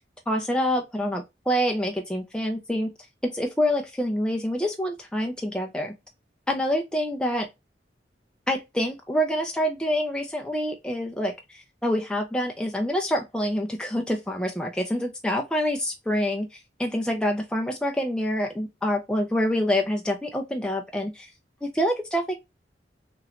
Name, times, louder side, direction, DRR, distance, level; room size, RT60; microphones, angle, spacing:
voice 1, 0.3-2.9 3.2-5.9 6.5-7.5 8.5-21.3 21.6-22.3, equal, 5° left, 0.4 m, -26 dB
3.0 x 3.0 x 2.4 m
head